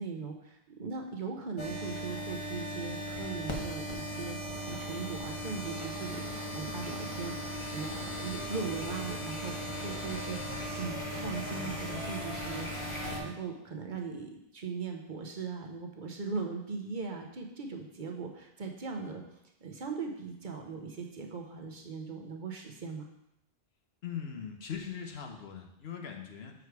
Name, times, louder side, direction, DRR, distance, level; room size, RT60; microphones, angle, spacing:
voice 1, 0.0-4.4 4.7-6.3 6.5-7.3 7.7-10.4 10.8-12.7 13.0-19.2 19.6-23.1, right 5 dB, 55° right, 3 dB, 1.0 m, -39 dB
sound 1, 1.6-13.2, equal, 30° left, 1.1 m, -38 dB
voice 2, 24.0-26.5, left 7 dB, 85° left, 3 dB, 1.1 m, -40 dB
6.3 x 4.9 x 4.7 m, 0.81 s
omnidirectional pair, 1.0 m